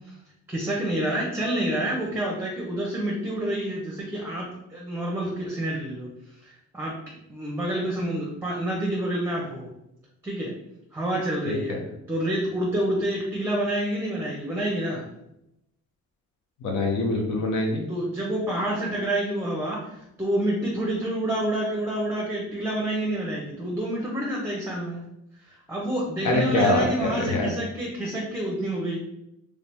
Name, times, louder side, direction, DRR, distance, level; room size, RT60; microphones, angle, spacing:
voice 1, 0.5-6.1 6.7-7.0 7.3-9.7 10.2-10.5 10.9-11.8 12.1-15.0 17.9-25.0 25.5-29.0, right 1 dB, 10° right, -3 dB, 0.8 m, -28 dB
voice 2, 11.4-11.8 16.6-17.8 26.2-27.5, left 2 dB, 75° left, 0 dB, 0.8 m, -24 dB
3.2 x 2.7 x 3.4 m, 0.83 s
cardioid pair, 90°, 30 cm